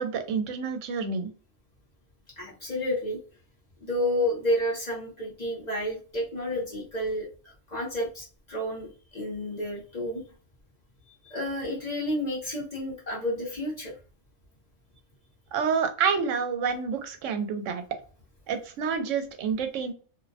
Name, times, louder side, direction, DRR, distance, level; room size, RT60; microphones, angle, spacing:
voice 1, 0.0-1.3 15.5-17.8 18.5-19.9, right 6 dB, 80° right, 7 dB, 0.9 m, -28 dB
voice 2, 2.4-3.2 3.8-10.2 11.2-13.9, left 1 dB, 40° left, -3 dB, 0.7 m, -30 dB
2.5 x 2.0 x 2.6 m, 0.37 s
omnidirectional pair, 1.3 m